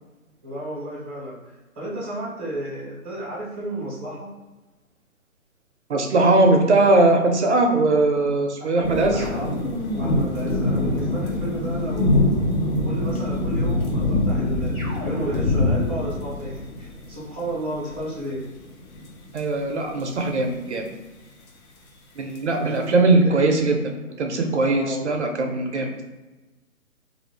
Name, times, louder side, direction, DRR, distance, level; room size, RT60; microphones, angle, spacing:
voice 1, 0.4-4.3 8.8-12.4 12.8-18.4 22.5-23.6 24.7-25.1, right 1 dB, 5° right, -9 dB, 0.5 m, -33 dB
voice 2, 5.9-9.2 19.3-20.8 22.2-23.7 24.2-26.0, right 2 dB, 55° right, 3 dB, 0.5 m, -20 dB
sound 1, 8.8-19.4 19.9-20.9 22.3-22.4, left 2 dB, 75° left, 0.8 m, -24 dB
sound 2, 9.2-11.6 14.7-15.8, right 1 dB, 15° left, 0.9 m, -35 dB
2.5 x 2.4 x 3.3 m, 1.2 s
hypercardioid pair, 145°, 43 cm